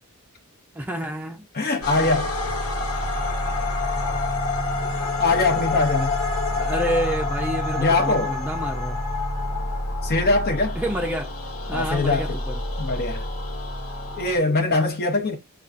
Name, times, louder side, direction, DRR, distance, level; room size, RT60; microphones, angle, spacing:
voice 1, 0.7-1.4 6.6-9.0 10.8-11.3 11.7-12.6, equal, 5° right, 0.4 m, -28 dB
voice 2, 1.5-2.3 5.2-6.2 7.8-8.3 10.0-10.8 11.7-12.4 12.8-13.3 14.2-15.4, left 3 dB, 45° left, 0.7 m, -22 dB
sound 1, 1.8-14.4, left 2 dB, 75° left, 1.4 m, -27 dB
6.8 x 2.3 x 2.5 m
head